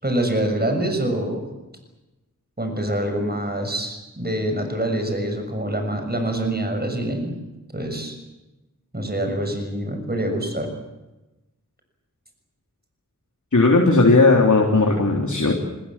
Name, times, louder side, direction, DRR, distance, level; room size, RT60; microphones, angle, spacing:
voice 1, 0.0-1.5 2.6-7.3 7.7-8.2 8.9-10.7, right 1 dB, 30° right, 5 dB, 6.5 m, -25 dB
voice 2, 13.5-15.5, left 3 dB, 65° left, 0 dB, 3.6 m, -16 dB
26.0 x 21.5 x 7.5 m, 1.0 s
wide cardioid pair, 40°, 32 cm